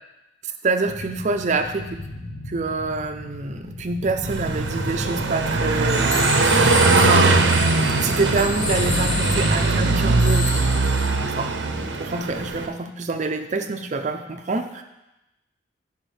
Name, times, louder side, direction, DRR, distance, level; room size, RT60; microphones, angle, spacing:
voice 1, 0.4-2.0 2.5-6.3 7.0-7.5 8.0-10.7 11.4-11.5 12.0-14.8, right 3 dB, 40° right, 7 dB, 0.5 m, -26 dB
sound 1, 0.9-10.1, left 2 dB, 65° left, 1.0 m, -36 dB
Car passing by, 4.2-12.7, right 3 dB, 80° right, 0.6 m, -20 dB
sound 2, 5.9-11.1, left 2 dB, 35° left, 1.4 m, -30 dB
10.5 x 5.6 x 3.3 m, 0.95 s
head